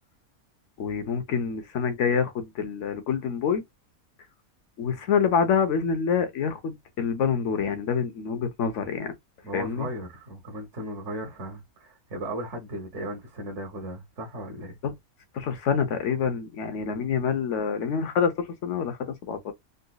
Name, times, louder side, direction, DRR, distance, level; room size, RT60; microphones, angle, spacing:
voice 1, 0.8-3.6 4.8-9.1 9.5-9.9 14.8-14.9 15.3-19.5, left 6 dB, 60° left, 1.0 m, -26 dB
voice 2, 9.4-14.8 16.8-17.0, right 1 dB, 55° right, 1.3 m, -36 dB
3.9 x 2.5 x 2.3 m
omnidirectional pair, 1.5 m